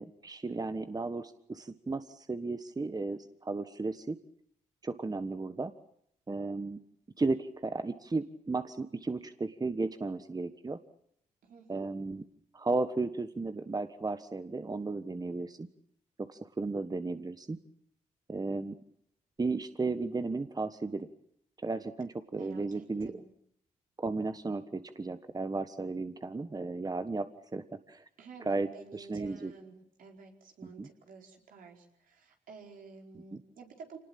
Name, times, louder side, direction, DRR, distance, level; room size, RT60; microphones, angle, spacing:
voice 1, 0.0-4.2 4.8-5.7 6.3-6.8 7.2-10.8 11.7-12.2 12.5-15.7 16.3-17.6 18.3-18.7 19.4-21.1 21.6-23.2 24.0-28.0 28.4-29.5 30.6-30.9 33.1-33.4, right 3 dB, 25° right, 10 dB, 1.4 m, -34 dB
voice 2, 11.4-11.9 22.3-23.3 28.2-34.0, right 5 dB, 75° right, 2 dB, 4.7 m, -51 dB
26.0 x 19.5 x 8.8 m, 0.70 s
supercardioid pair, 55°, 14 cm